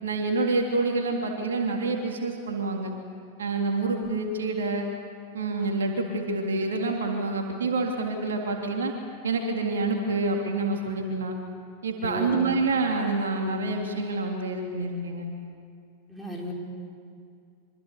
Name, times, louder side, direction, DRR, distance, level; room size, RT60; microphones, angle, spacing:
voice 1, 0.0-2.9 3.4-4.9 5.3-8.9 9.2-11.4 11.8-15.3, right 3 dB, 65° right, 2 dB, 3.1 m, -27 dB
voice 2, 12.0-12.5 16.1-16.5, equal, 5° right, -2 dB, 5.7 m, -34 dB
25.5 x 25.0 x 8.4 m, 2.4 s
figure-of-eight pair, 90°, 0 cm